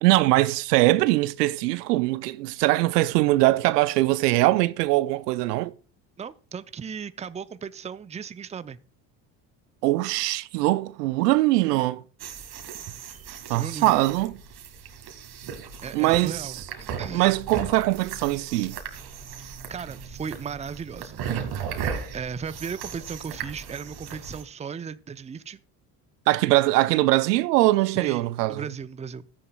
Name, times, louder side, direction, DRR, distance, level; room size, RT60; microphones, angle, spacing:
voice 1, 0.0-5.7 9.8-12.0 13.5-14.4 15.9-16.5 17.1-18.8 26.3-28.6, right 18 dB, 80° right, 0.6 m, -22 dB
voice 2, 6.2-8.8 13.5-14.0 15.8-16.6 17.0-17.4 19.4-21.2 21.6-21.9 22.1-25.6 27.8-29.3, right 6 dB, 15° right, 0.5 m, -36 dB
sound 1, 12.2-24.4, right 7 dB, 50° right, 2.0 m, -36 dB
14.5 x 9.5 x 2.3 m
hypercardioid pair, 70°, 47 cm